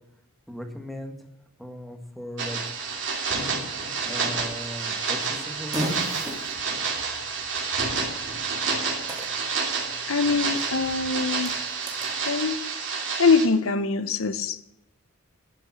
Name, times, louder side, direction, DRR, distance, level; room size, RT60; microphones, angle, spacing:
voice 1, 0.5-1.2 1.6-2.7 4.1-6.1, equal, ahead, 4 dB, 1.6 m, -37 dB
sound 1, 2.4-13.5, right 5 dB, 60° right, 2.8 m, -29 dB
Fart, 4.4-12.1, right 1 dB, 20° right, 2.5 m, -39 dB
voice 2, 10.1-11.5 12.3-12.6 13.2-14.6, left 4 dB, 80° left, 13 dB, 0.9 m, -23 dB
11.5 x 6.9 x 8.3 m, 0.83 s
head